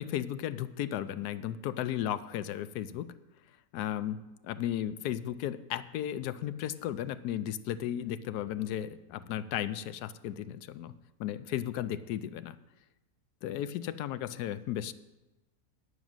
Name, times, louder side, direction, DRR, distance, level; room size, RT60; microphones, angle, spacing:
voice 1, 0.0-3.1 3.7-4.2 4.4-10.9 11.2-12.6 13.4-14.9, left 11 dB, 80° left, 13 dB, 1.1 m, -35 dB
9.7 x 9.0 x 6.1 m, 1.0 s
omnidirectional pair, 1.7 m